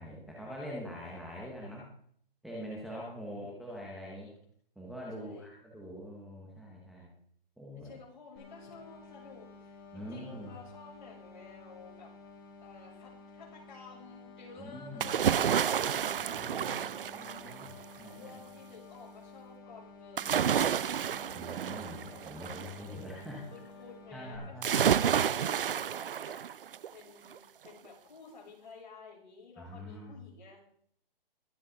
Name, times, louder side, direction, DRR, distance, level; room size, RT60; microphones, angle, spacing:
voice 1, 0.0-1.9 2.4-4.3 4.8-7.1 7.6-7.9 9.9-10.5 14.6-15.1 16.1-16.8 17.0-18.3 21.3-23.4 24.1-25.2 29.6-30.2, equal, ahead, -5 dB, 0.7 m, -44 dB
voice 2, 1.0-1.7 3.1-3.5 5.2-5.5 7.7-12.1 12.6-16.9 18.1-20.9 23.5-26.4 26.9-30.6, left 4 dB, 55° left, -2 dB, 6.5 m, -52 dB
sound 1, 8.4-24.4, left 3 dB, 25° left, 3.2 m, -52 dB
sound 2, 15.0-17.8 20.2-22.8 24.6-26.9 27.3-27.4, right 8 dB, 70° right, 0.6 m, -30 dB
22.5 x 8.0 x 3.8 m, 0.63 s
hypercardioid pair, 170°, 29 cm